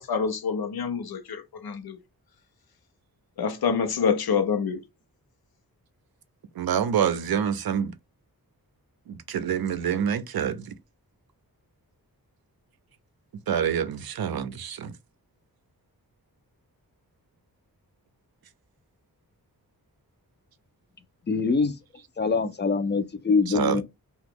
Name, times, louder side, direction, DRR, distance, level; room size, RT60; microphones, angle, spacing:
voice 1, 0.0-2.0 3.4-4.8, left 6 dB, 80° left, 0.6 m, -26 dB
voice 2, 6.6-7.9 9.1-10.6 13.5-14.9 23.5-23.8, right 8 dB, 75° right, 0.5 m, -26 dB
voice 3, 21.3-21.8 22.2-23.8, left 4 dB, 30° left, 0.4 m, -24 dB
2.9 x 2.3 x 3.5 m
wide cardioid pair, 135°, 37 cm